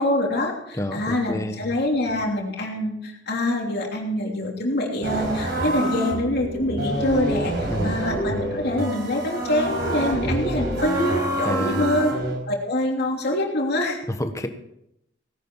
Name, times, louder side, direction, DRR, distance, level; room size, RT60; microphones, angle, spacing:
voice 1, 0.0-12.1 12.5-14.0, left 1 dB, 60° left, 0 dB, 3.1 m, -25 dB
voice 2, 0.8-1.6 7.7-8.0 11.4-11.9 14.1-14.5, left 1 dB, 15° left, 7 dB, 1.2 m, -28 dB
sound 1, 5.0-12.4, right 1 dB, 60° right, 4.7 m, -27 dB
18.0 x 11.0 x 4.7 m, 0.78 s
head